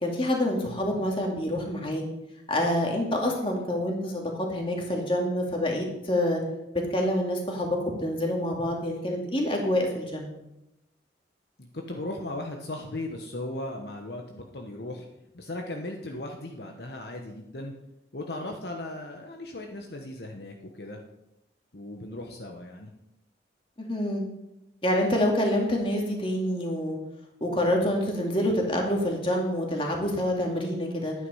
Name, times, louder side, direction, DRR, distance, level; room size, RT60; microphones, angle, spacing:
voice 1, 0.0-2.0 2.5-6.4 6.9-10.3 23.8-24.2 24.8-27.0 27.4-31.1, left 1 dB, 30° left, 0 dB, 2.4 m, -27 dB
voice 2, 11.6-15.1 15.3-17.7 18.1-21.0 21.7-22.9, left 1 dB, 60° left, 2 dB, 1.1 m, -37 dB
11.0 x 9.6 x 5.6 m, 0.90 s
head